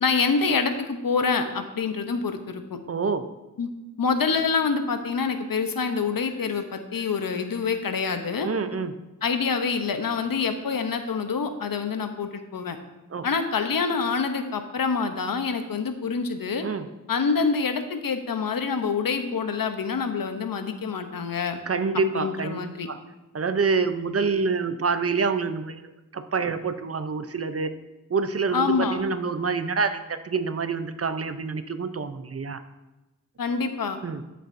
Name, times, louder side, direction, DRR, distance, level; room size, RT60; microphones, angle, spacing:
voice 1, 0.0-2.8 3.6-3.7 4.0-8.5 9.2-12.8 13.2-16.6 17.1-21.6 22.1-22.9 28.5-29.0 33.4-34.0, left 5 dB, 90° left, 8 dB, 0.8 m, -26 dB
voice 2, 2.9-3.3 8.4-9.0 13.1-13.3 16.6-16.8 21.7-22.6 22.9-23.0 23.3-27.7 28.1-32.6 34.0-34.2, right 4 dB, 45° right, 10 dB, 0.5 m, -27 dB
12.5 x 6.7 x 2.6 m, 1.0 s
wide cardioid pair, 75°, 33 cm